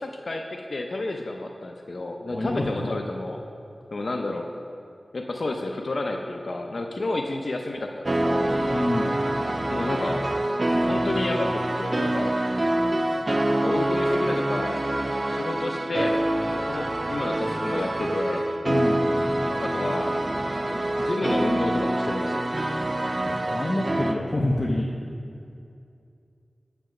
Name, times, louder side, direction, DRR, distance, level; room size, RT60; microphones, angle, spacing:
voice 1, 0.0-3.4 3.9-4.5 5.1-8.5 9.7-10.3 10.9-12.3 13.4-14.8 15.3-16.2 16.5-18.4 19.6-20.2 20.7-22.5, left 2 dB, 65° left, 3 dB, 0.5 m, -30 dB
voice 2, 2.3-2.9 8.7-9.1 18.7-19.0 23.5-24.9, left 1 dB, 30° left, -2 dB, 0.7 m, -26 dB
sound 1, 8.0-24.1, right 1 dB, 40° right, 0.5 m, -26 dB
8.7 x 5.3 x 5.9 m, 2.5 s
wide cardioid pair, 70°, 0 cm